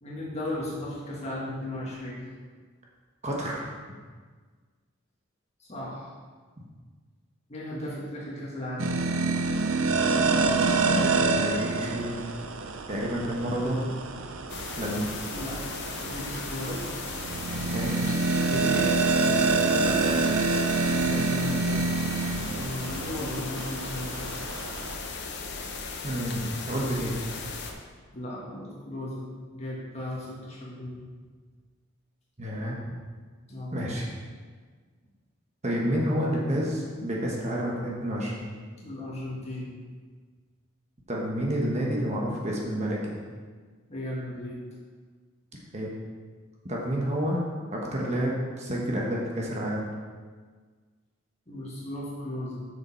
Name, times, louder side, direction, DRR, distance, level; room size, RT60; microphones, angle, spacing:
voice 1, 0.0-2.3 5.6-6.1 7.5-9.0 15.3-16.8 18.4-18.9 19.2-20.0 21.1-21.9 22.3-24.3 28.1-31.1 33.5-33.9 38.8-39.8 43.9-44.6 51.5-52.7, left 1 dB, 30° left, -6 dB, 1.9 m, -36 dB
voice 2, 3.2-3.6 10.8-12.2 12.9-13.9 14.8-15.1 17.7-17.9 20.0-20.2 26.0-27.1 32.4-32.9 33.7-34.1 35.6-38.5 41.1-43.1 45.7-45.9 46.7-47.4 47.7-49.9, equal, 35° right, -3 dB, 1.1 m, -29 dB
sound 1, 8.8-24.9, right 3 dB, 75° right, 0.6 m, -27 dB
sound 2, 14.5-27.7, left 4 dB, 55° left, 0.8 m, -37 dB
6.9 x 6.7 x 4.3 m, 1.5 s
head